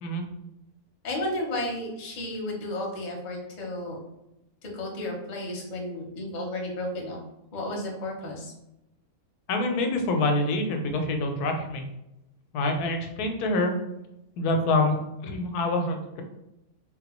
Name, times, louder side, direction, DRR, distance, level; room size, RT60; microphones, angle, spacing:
voice 1, 1.0-4.0 4.6-7.2 7.5-8.5, left 1 dB, 40° left, -1 dB, 0.6 m, -33 dB
voice 2, 9.5-11.8 12.5-13.7 14.4-16.2, left 2 dB, 85° left, 4 dB, 1.1 m, -26 dB
3.9 x 2.2 x 3.0 m, 0.89 s
omnidirectional pair, 1.6 m